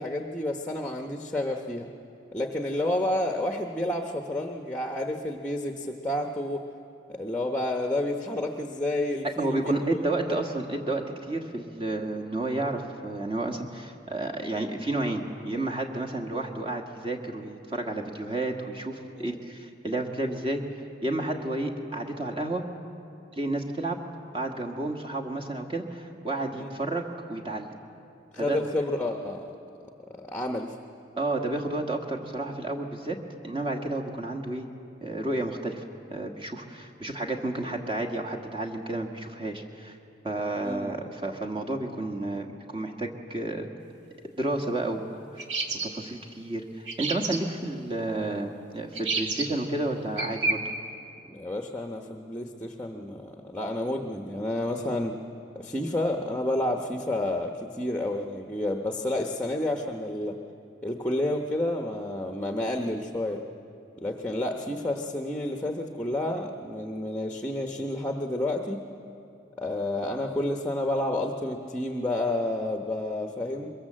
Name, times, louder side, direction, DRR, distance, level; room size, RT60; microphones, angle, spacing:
voice 1, 0.0-1.9 2.3-6.7 7.1-10.0 10.4-10.5 19.2-19.4 26.5-26.8 28.3-29.5 30.1-30.7 40.6-40.9 51.3-55.2 55.5-60.4 60.8-63.4 64.0-68.9 69.6-73.7, left 1 dB, 10° left, 4 dB, 1.0 m, -30 dB
voice 2, 9.4-20.6 21.0-22.6 23.3-24.0 24.3-27.7 28.4-28.6 31.2-33.2 33.4-34.7 35.0-35.8 36.1-40.0 40.2-43.7 44.4-45.4 45.8-50.6, right 2 dB, 25° right, 2 dB, 1.6 m, -31 dB
sound 1, 45.4-45.9 46.9-47.4 48.9-49.5 50.2-50.5, right 3 dB, 70° right, 2.0 m, -29 dB
23.0 x 22.5 x 7.6 m, 2.6 s
head